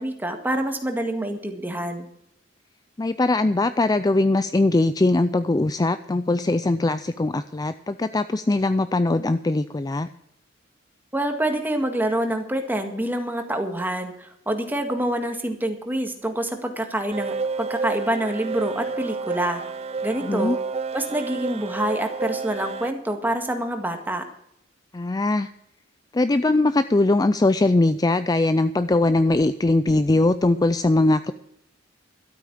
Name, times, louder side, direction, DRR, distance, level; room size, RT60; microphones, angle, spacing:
voice 1, 0.0-2.1 11.1-19.6 20.0-20.6 20.9-24.2, right 1 dB, 10° right, 5 dB, 1.9 m, -26 dB
voice 2, 3.0-10.1 20.2-20.6 24.9-25.5 26.1-31.3, left 2 dB, 20° left, 12 dB, 0.4 m, -21 dB
sound 1, 17.1-22.9, right 4 dB, 35° right, 0.5 m, -30 dB
12.5 x 8.7 x 7.4 m, 0.74 s
head